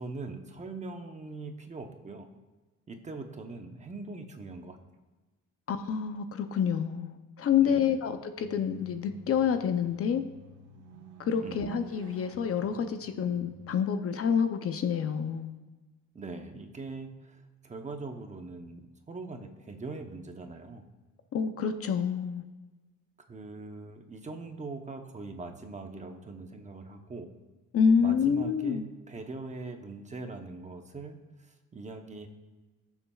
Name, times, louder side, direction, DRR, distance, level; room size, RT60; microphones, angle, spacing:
voice 1, 0.0-2.3 2.9-4.8 7.6-8.0 11.4-11.6 16.1-20.8 23.2-27.3 28.0-32.3, right 3 dB, 25° right, 5 dB, 0.8 m, -42 dB
voice 2, 5.7-10.2 11.3-15.5 21.3-22.5 27.7-28.8, left 7 dB, 45° left, 8 dB, 0.6 m, -28 dB
sound 1, 8.4-13.7, right 4 dB, 70° right, 1.3 m, -50 dB
19.0 x 7.1 x 2.4 m, 1.2 s
cardioid pair, 150°, 31 cm